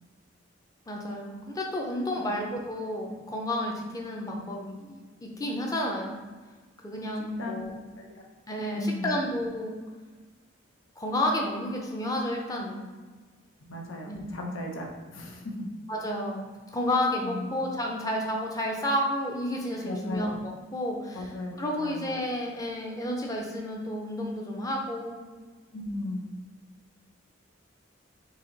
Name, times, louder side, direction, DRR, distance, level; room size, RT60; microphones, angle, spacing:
voice 1, 0.9-6.2 6.8-7.8 8.5-9.8 11.0-12.9 14.1-14.3 15.1-15.2 15.9-16.4 16.7-21.3 21.6-25.2, left 1 dB, 20° left, 0 dB, 0.6 m, -31 dB
voice 2, 8.7-9.2 13.7-15.6 17.2-17.6 19.8-20.4 21.1-22.1 25.7-26.3, left 1 dB, 85° left, 0 dB, 0.7 m, -36 dB
4.1 x 2.8 x 3.9 m, 1.3 s
head